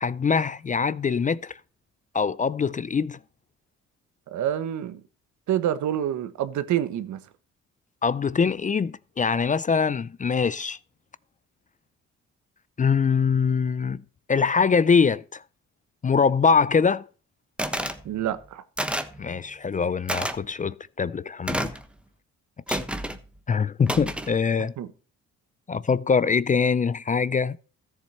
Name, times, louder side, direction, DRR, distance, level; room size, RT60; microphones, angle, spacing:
voice 1, 0.0-1.5 2.1-3.2 8.0-10.8 12.8-14.0 14.3-15.4 16.0-17.0 19.2-21.7 22.7-22.8 23.5-24.7 25.7-27.6, left 5 dB, 25° left, 0.4 m, -23 dB
voice 2, 4.3-5.0 5.5-7.2 18.0-18.6 24.8-24.9, right 11 dB, 70° right, 1.1 m, -27 dB
sound 1, 17.6-18.0 18.8-19.2 20.1-20.4 21.5-21.8 22.7-23.2 23.9-24.3, right 1 dB, 5° right, 1.2 m, -29 dB
13.5 x 7.5 x 4.2 m
cardioid pair, 90°, 30 cm